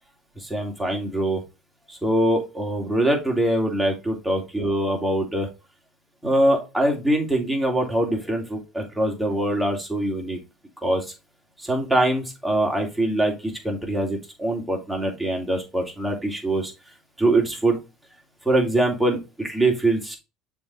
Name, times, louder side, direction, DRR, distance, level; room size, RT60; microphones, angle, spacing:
voice 1, 0.4-1.4 1.9-5.5 6.2-10.4 10.8-11.0 11.6-16.7 17.2-17.8 18.4-20.2, right 1 dB, 5° right, 0 dB, 2.7 m, -23 dB
6.9 x 3.6 x 4.1 m, 0.27 s
hypercardioid pair, 70°, 0 cm